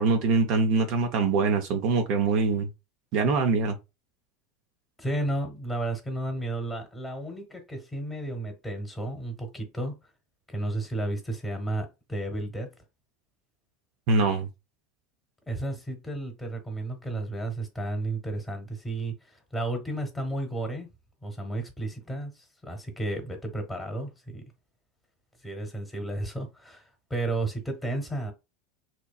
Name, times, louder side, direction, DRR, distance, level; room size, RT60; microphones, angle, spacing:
voice 1, 0.0-2.7 3.1-3.8 14.1-14.5, right 4 dB, 55° right, 0.5 m, -23 dB
voice 2, 5.0-9.9 10.5-12.7 15.5-20.9 21.2-24.4 25.4-28.3, right 2 dB, 10° left, 1.0 m, -33 dB
2.8 x 2.2 x 2.3 m
hypercardioid pair, 85°, 0 cm